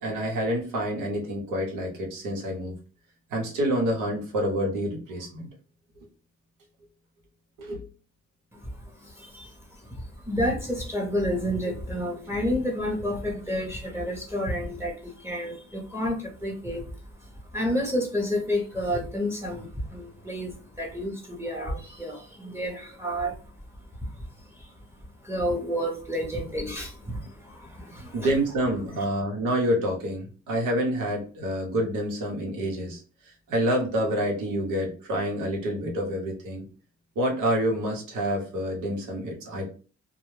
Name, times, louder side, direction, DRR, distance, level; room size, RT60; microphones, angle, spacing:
voice 1, 0.0-2.8 3.3-5.5 7.6-7.8 28.1-33.0 33.5-36.7 37.2-39.7, equal, 90° right, 0.9 m, -27 dB
voice 2, 8.5-23.6 24.0-28.3 28.8-28.9, equal, 10° right, 0.8 m, -31 dB
2.3 x 2.1 x 3.0 m
cardioid pair, 90°, 30 cm